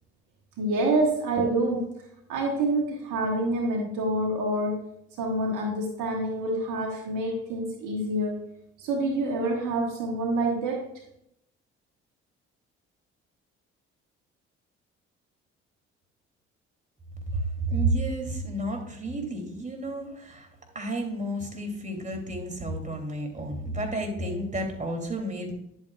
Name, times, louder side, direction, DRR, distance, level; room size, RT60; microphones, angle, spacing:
voice 1, 0.6-1.9 2.3-4.8 5.2-8.4 8.8-10.9, right 2 dB, 65° right, 2 dB, 1.4 m, -27 dB
voice 2, 17.3-20.5 20.7-25.5, right 1 dB, 20° right, 2 dB, 2.9 m, -31 dB
10.5 x 8.2 x 2.4 m, 0.77 s
hypercardioid pair, 50°, 33 cm